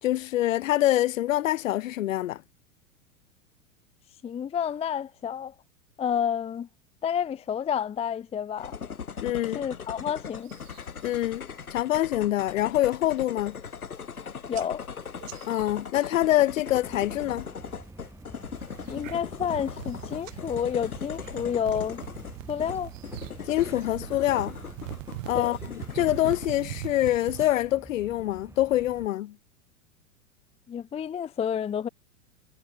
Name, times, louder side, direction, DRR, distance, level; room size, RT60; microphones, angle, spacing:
voice 1, 0.0-2.4 9.2-9.6 11.0-13.6 15.5-17.5 23.5-24.6 25.3-29.4, left 14 dB, 65° left, 3.5 m, -25 dB
voice 2, 4.2-5.5 6.0-6.7 7.0-8.7 9.5-10.5 14.5-14.8 18.9-22.0 22.5-22.9 25.3-25.6 30.7-31.9, left 8 dB, 15° left, 0.6 m, -29 dB
sound 1, 8.6-26.5, left 6 dB, 85° left, 2.2 m, -39 dB
sound 2, 10.4-11.2 11.6-12.0 12.4-12.8 13.2-13.3 13.5-14.2 14.5-17.1 17.4-17.9 18.4-27.5, right 16 dB, 60° right, 3.0 m, -42 dB
sound 3, 16.7-29.1, right 2 dB, 5° right, 6.6 m, -48 dB
figure-of-eight pair, 95°, 42 cm